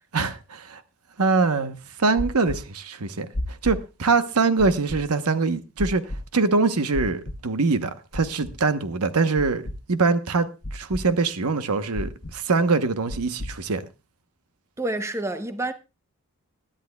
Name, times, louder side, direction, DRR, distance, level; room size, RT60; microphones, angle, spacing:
voice 1, 0.1-0.8 1.2-3.3 3.6-6.0 6.3-13.8, right 4 dB, 90° right, 0.9 m, -23 dB
sound 1, 2.2-2.6 3.3-3.8 4.6-5.0 5.8-6.2 6.9-7.4 8.1-8.5 9.4-9.8 10.6-11.0 11.9-12.3 13.1-13.5, left 1 dB, 45° left, 1.0 m, -31 dB
voice 2, 14.8-15.7, right 2 dB, 10° right, 0.6 m, -28 dB
21.5 x 10.0 x 2.3 m
head